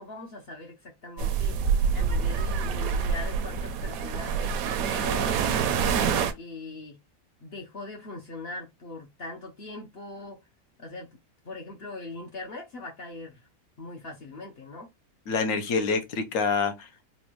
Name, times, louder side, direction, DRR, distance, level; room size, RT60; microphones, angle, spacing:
voice 1, 0.0-7.0 7.4-10.4 10.8-11.1 11.4-13.5 13.8-14.9, left 2 dB, 55° left, 0.7 m, -41 dB
sound 1, 1.2-6.3, right 6 dB, 70° right, 1.0 m, -26 dB
voice 2, 15.3-17.1, left 4 dB, 70° left, 1.2 m, -27 dB
4.1 x 2.3 x 3.0 m
omnidirectional pair, 1.6 m